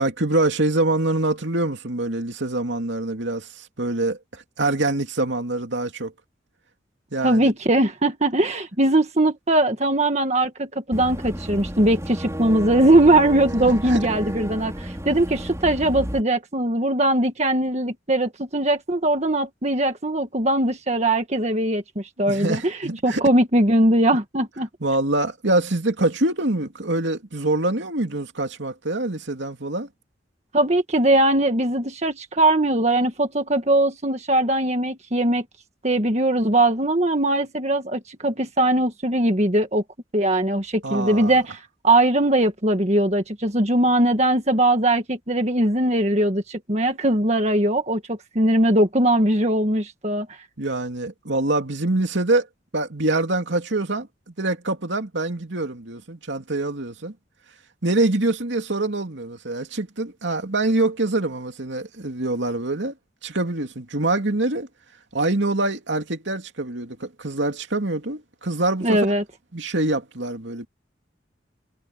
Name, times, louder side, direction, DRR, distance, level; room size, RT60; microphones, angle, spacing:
voice 1, 0.0-6.1 7.1-7.5 13.6-14.0 22.2-23.2 24.8-29.9 40.8-41.4 50.6-52.5 52.7-57.1 57.8-62.9 63.2-64.7 65.1-69.1 69.5-70.7, right 2 dB, 70° right, 2.6 m, -25 dB
voice 2, 7.2-22.8 23.0-24.7 30.5-35.4 35.8-39.8 40.1-50.3 68.8-69.2, right 1 dB, 35° right, 1.7 m, -20 dB
Boat Water vehicle / Engine, 10.9-16.2, equal, 15° right, 5.8 m, -32 dB
head